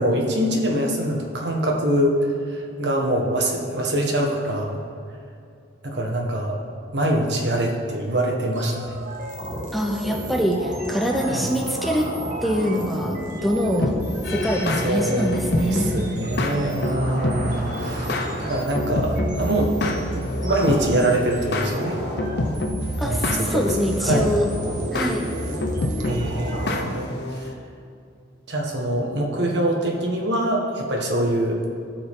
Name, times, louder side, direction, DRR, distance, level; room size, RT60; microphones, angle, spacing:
voice 1, 0.0-2.2 2.5-4.8 5.8-6.6 6.9-8.9 11.3-11.5 14.8-15.3 15.7-19.7 20.1-22.0 23.0-23.6 24.0-24.3 26.0-27.5 28.5-31.6, right 1 dB, 65° right, 0 dB, 1.5 m, -24 dB
sound 1, 8.5-26.8, right 1 dB, 45° right, 1.6 m, -31 dB
voice 2, 9.7-12.1 12.4-14.0 14.3-15.9 23.0-24.5 24.9-25.3, equal, ahead, 1 dB, 0.6 m, -24 dB
sound 2, 13.8-27.5, left 2 dB, 60° left, 0.8 m, -28 dB
16.0 x 5.9 x 3.7 m, 2.5 s
head